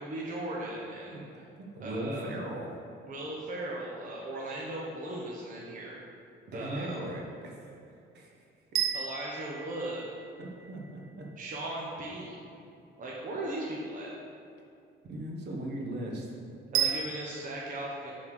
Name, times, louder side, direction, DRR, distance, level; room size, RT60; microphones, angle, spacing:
voice 1, 0.0-1.5 1.8-2.3 3.0-6.0 6.5-7.0 8.9-10.2 11.4-12.5 13.0-14.1 16.7-18.1, right 1 dB, 40° right, -4 dB, 1.2 m, -38 dB
voice 2, 1.1-2.7 6.5-7.6 8.1-8.3 10.4-11.3 15.0-16.3, right 1 dB, 55° right, -1 dB, 1.4 m, -38 dB
sound 1, 8.7-10.9 16.7-17.5, right 9 dB, 85° right, 0.9 m, -33 dB
7.2 x 4.5 x 6.5 m, 2.6 s
cardioid pair, 130°, 20 cm